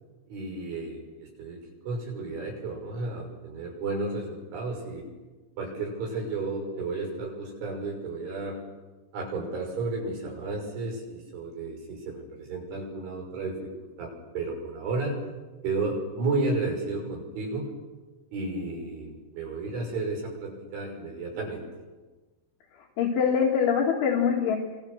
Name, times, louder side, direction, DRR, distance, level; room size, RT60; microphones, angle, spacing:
voice 1, 0.3-5.0 5.6-8.6 9.1-13.6 14.0-15.2 15.6-17.7 18.3-21.6, right 3 dB, 65° right, 0 dB, 8.4 m, -32 dB
voice 2, 23.0-24.6, left 7 dB, 70° left, -2 dB, 4.5 m, -23 dB
29.0 x 26.5 x 6.6 m, 1.3 s
omnidirectional pair, 5.8 m